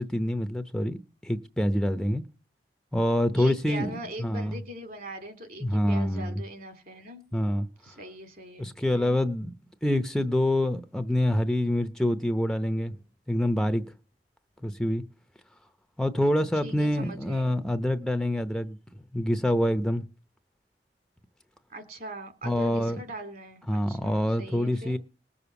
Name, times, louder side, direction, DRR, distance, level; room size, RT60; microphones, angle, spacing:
voice 1, 0.0-2.2 2.9-3.9 4.2-4.6 5.6-6.4 7.3-7.7 8.6-9.6 9.8-13.0 13.3-13.8 14.6-15.0 16.0-18.8 19.1-20.0 22.4-23.0 23.7-25.0, left 1 dB, 5° left, 0.7 m, -26 dB
voice 2, 3.3-7.2 7.8-9.2 16.6-17.5 21.7-25.0, right 1 dB, 55° right, 3.4 m, -41 dB
20.0 x 7.0 x 7.0 m
head